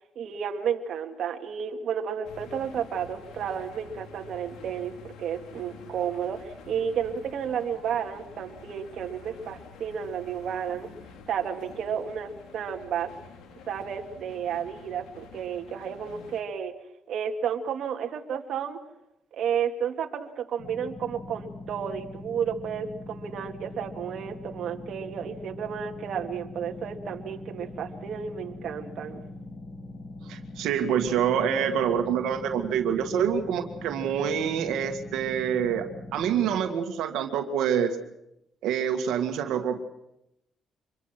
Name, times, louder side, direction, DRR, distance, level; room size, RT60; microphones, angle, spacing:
voice 1, 0.2-10.9 11.3-13.1 13.7-16.7 17.1-18.8 19.3-29.2, right 8 dB, 70° right, 3 dB, 2.1 m, -32 dB
sound 1, 2.2-16.4, left 5 dB, 85° left, 2.9 m, -48 dB
sound 2, 20.6-36.6, left 2 dB, 65° left, 3.1 m, -42 dB
voice 2, 30.3-35.9 36.1-38.0 38.6-39.8, right 8 dB, 90° right, 5 dB, 2.1 m, -26 dB
25.5 x 22.5 x 6.1 m, 0.82 s
cardioid pair, 90°, 0 cm